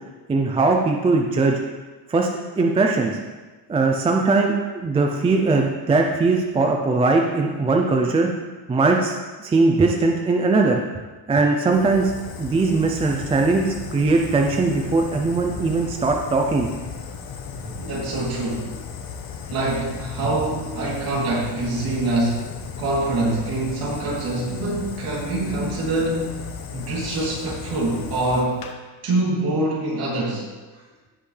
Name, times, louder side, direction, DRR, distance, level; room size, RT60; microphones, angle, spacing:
voice 1, 0.3-1.6 2.1-2.3 2.6-3.2 3.7-8.3 8.7-10.8 11.3-12.1 12.4-16.7, right 3 dB, 15° right, 1 dB, 0.4 m, -20 dB
Fire, 11.7-28.7, left 6 dB, 45° left, 1.0 m, -36 dB
voice 2, 17.6-18.7 19.5-22.5 22.8-26.4 26.7-28.6 29.0-30.5 30.7-30.8, right 2 dB, 50° right, -5 dB, 3.0 m, -25 dB
16.5 x 5.6 x 3.3 m, 1.2 s
cardioid pair, 180°, 46 cm